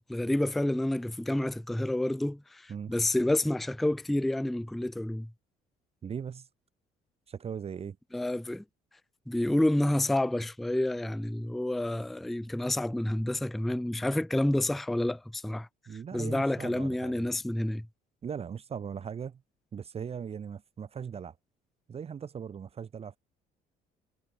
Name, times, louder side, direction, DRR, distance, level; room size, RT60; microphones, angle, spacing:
voice 1, 0.0-5.3 8.1-8.6 9.3-15.7 16.1-17.9, left 1 dB, ahead, 0.3 m, -29 dB
voice 2, 6.0-6.5 7.3-8.0 15.9-17.2 18.2-19.4 19.7-21.4 21.9-23.2, right 7 dB, 35° right, 1.2 m, -39 dB
cardioid pair, 110°, 17 cm